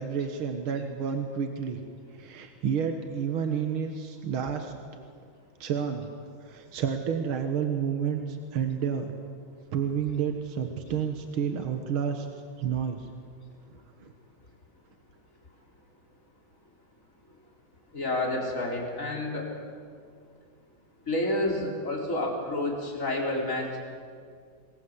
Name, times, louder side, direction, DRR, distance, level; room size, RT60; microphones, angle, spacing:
voice 1, 0.0-1.8 2.1-4.7 5.6-6.1 6.4-9.1 9.7-12.3 12.6-13.1 14.0-14.1, right 7 dB, 80° right, 6 dB, 2.3 m, -30 dB
voice 2, 17.9-19.5 21.1-23.8, left 1 dB, 35° left, 0 dB, 4.8 m, -29 dB
27.5 x 21.0 x 8.2 m, 2.1 s
omnidirectional pair, 2.3 m